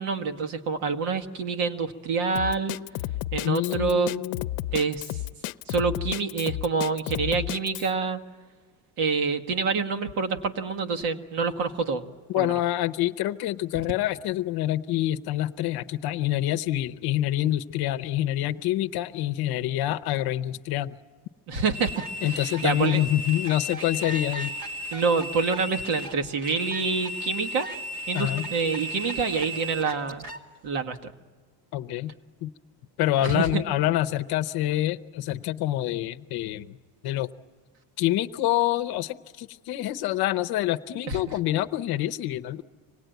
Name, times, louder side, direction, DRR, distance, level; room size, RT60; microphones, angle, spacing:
voice 1, 0.0-2.8 3.3-4.1 4.7-5.1 5.7-8.2 9.0-12.0 12.4-12.5 21.5-22.0 22.3-23.0 24.9-27.7 28.1-30.2 30.6-31.1 33.2-33.6 41.1-41.2, right 5 dB, 80° right, 5 dB, 1.8 m, -27 dB
Drum kit, 2.4-7.9, left 15 dB, 90° left, 0.7 m, -32 dB
voice 2, 3.4-4.5 12.3-21.0 22.2-24.5 28.1-28.5 31.7-32.1 32.4-32.5 33.0-36.8 37.0-37.3 38.0-42.6, left 14 dB, 50° left, 9 dB, 0.7 m, -26 dB
sound 1, 21.7-30.4, equal, 50° right, 2.4 m, -35 dB
25.5 x 19.0 x 9.2 m, 1.5 s
cardioid pair, 180°, 49 cm